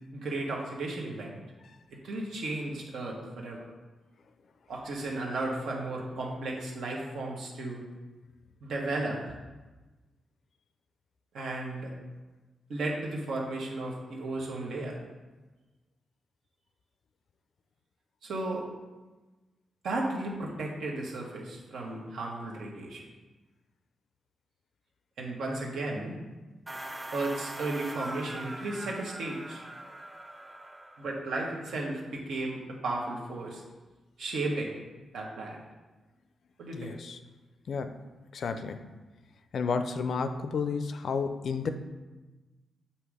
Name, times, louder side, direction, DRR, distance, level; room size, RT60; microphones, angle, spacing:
voice 1, 0.1-1.4 2.0-3.6 4.7-7.8 8.6-9.3 11.3-11.9 12.7-15.0 18.2-18.6 19.8-23.0 25.2-26.2 27.1-29.6 31.0-33.6 34.2-34.7 35.1-35.6 36.6-36.9, right 2 dB, 80° right, -2 dB, 1.2 m, -34 dB
sound 1, 26.7-31.2, right 1 dB, 15° right, 0.3 m, -42 dB
voice 2, 36.7-37.2 37.7-38.0 38.3-38.9 39.5-41.7, left 5 dB, 55° left, 9 dB, 0.4 m, -31 dB
7.7 x 2.9 x 4.8 m, 1.2 s
wide cardioid pair, 160°, 0 cm